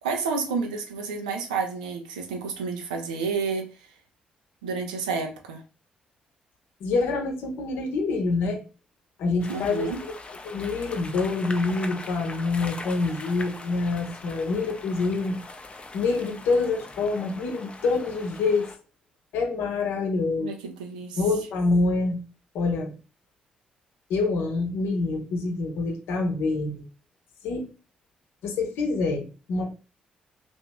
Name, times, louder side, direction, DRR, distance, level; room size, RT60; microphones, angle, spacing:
voice 1, 0.0-3.7 4.6-5.6 9.5-10.0 20.4-21.2, right 5 dB, 80° right, 4 dB, 0.6 m, -30 dB
voice 2, 6.8-8.6 9.2-9.9 10.4-15.4 15.9-18.7 19.3-20.5 21.2-22.2 22.5-22.9 24.1-26.8 27.4-27.7 28.4-29.7, left 3 dB, 65° left, 3 dB, 0.8 m, -26 dB
sound 1, 9.4-18.8, left 2 dB, 30° left, 0.6 m, -41 dB
2.8 x 2.6 x 3.5 m, 0.33 s
figure-of-eight pair, 40°, 4 cm